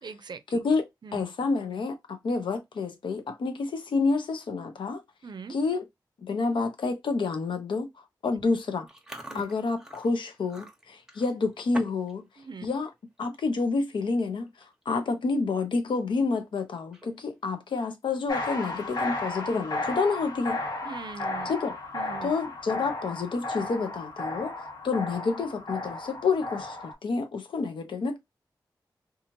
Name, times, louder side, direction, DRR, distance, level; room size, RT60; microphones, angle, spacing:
voice 1, 0.0-0.6 1.0-1.2 5.2-5.6 8.3-8.4 9.3-9.5 12.4-12.8 20.8-21.5 21.9-22.3, right 5 dB, 65° right, 0.5 m, -41 dB
voice 2, 0.5-0.8 1.1-5.0 5.5-5.8 6.2-7.9 8.2-8.9 9.3-12.2 12.6-12.9 13.2-14.5 14.9-20.6 21.4-21.8 22.2-24.5 24.8-28.2, left 4 dB, 85° left, 0.6 m, -28 dB
Chewing mastication, 8.9-12.1 12.4-12.7 13.2-13.4 14.2-14.3 14.5-14.8 15.2-15.3 16.8-17.4, right 1 dB, 5° right, 1.0 m, -44 dB
sound 1, 18.3-26.9, left 2 dB, 60° left, 1.3 m, -34 dB
2.9 x 2.4 x 2.7 m
cardioid pair, 45°, 8 cm